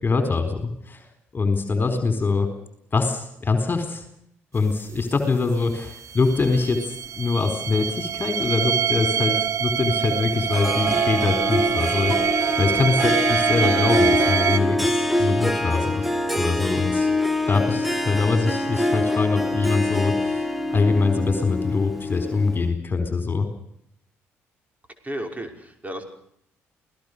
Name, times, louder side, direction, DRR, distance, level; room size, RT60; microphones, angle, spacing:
voice 1, 0.0-1.0 1.3-2.5 2.9-4.0 4.5-12.1 12.6-16.1 16.4-17.1 17.5-23.5, left 4 dB, 30° left, 7 dB, 4.3 m, -23 dB
sound 1, 4.7-4.8 5.0-5.1 5.5-14.6, right 8 dB, 50° right, 1.1 m, -25 dB
Harp, 10.5-22.7, left 1 dB, ahead, 2.9 m, -25 dB
voice 2, 25.0-26.0, right 1 dB, 25° right, 5 dB, 5.8 m, -33 dB
28.0 x 18.0 x 6.8 m, 0.72 s
hypercardioid pair, 50°, 7 cm